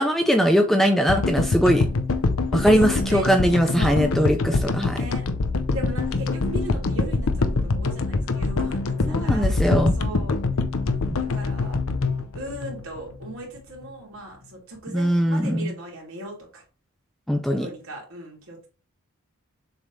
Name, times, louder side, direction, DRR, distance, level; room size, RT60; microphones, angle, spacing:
voice 1, 0.0-1.9 2.5-5.1 9.1-10.0 11.1-11.2 14.9-15.7 17.3-17.7, equal, ahead, 6 dB, 0.4 m, -21 dB
sound 1, 1.1-13.4, left 3 dB, 65° left, 0.6 m, -24 dB
voice 2, 2.7-3.3 3.7-4.0 4.9-5.2 5.7-10.4 11.3-11.8 12.3-16.6 17.6-18.7, right 2 dB, 70° right, -1 dB, 2.6 m, -37 dB
7.0 x 3.3 x 4.0 m, 0.35 s
head